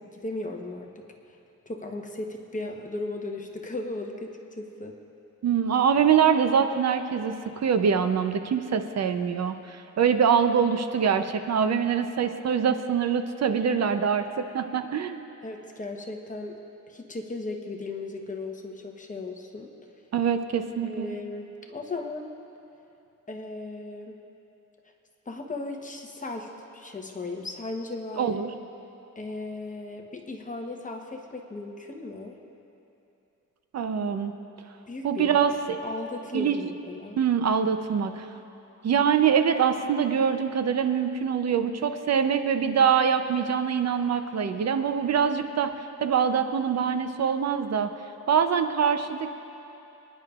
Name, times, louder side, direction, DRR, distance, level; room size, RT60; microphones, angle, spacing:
voice 1, 0.0-1.4 1.7-5.0 15.4-16.6 16.9-19.7 20.8-22.3 23.3-24.2 25.3-28.4 29.2-32.4 34.9-35.5 35.8-37.2, left 2 dB, 25° left, 2 dB, 1.0 m, -36 dB
voice 2, 5.4-7.4 7.6-15.2 20.1-21.2 28.2-28.5 33.7-34.3 35.0-35.8 36.3-36.6 37.2-38.2 38.8-45.7 46.0-47.9 48.3-49.4, right 7 dB, 55° right, 8 dB, 0.6 m, -24 dB
27.0 x 10.5 x 2.4 m, 2.8 s
wide cardioid pair, 125°, 31 cm